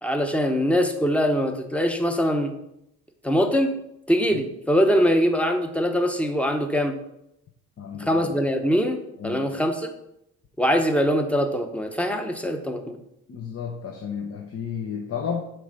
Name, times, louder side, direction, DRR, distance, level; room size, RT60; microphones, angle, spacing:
voice 1, 0.0-2.5 3.2-3.7 4.1-6.9 8.1-9.9 10.6-13.0, equal, 5° left, 5 dB, 0.9 m, -23 dB
voice 2, 7.8-8.2 9.2-9.5 13.3-15.4, left 7 dB, 50° left, 1 dB, 0.8 m, -32 dB
7.6 x 3.3 x 5.2 m, 0.82 s
cardioid pair, 90°, 30 cm